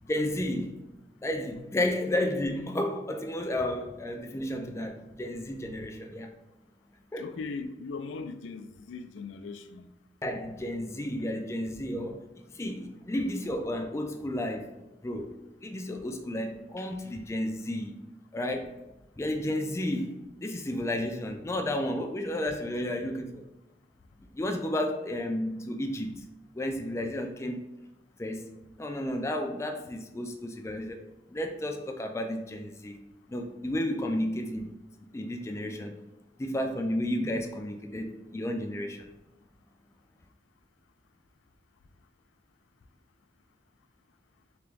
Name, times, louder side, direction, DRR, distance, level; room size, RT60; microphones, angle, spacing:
voice 1, 0.0-0.8 1.2-6.3 7.1-7.3 10.2-12.2 12.5-14.7 15.0-18.0 18.3-18.7 19.2-23.4 24.3-26.2 26.5-27.6 28.2-28.5 28.8-31.0 31.3-33.0 33.3-34.7 35.1-36.0 36.4-39.1, left 1 dB, 15° left, 0.3 m, -32 dB
voice 2, 7.2-9.9, left 4 dB, 90° left, 0.4 m, -39 dB
3.5 x 2.9 x 3.3 m
head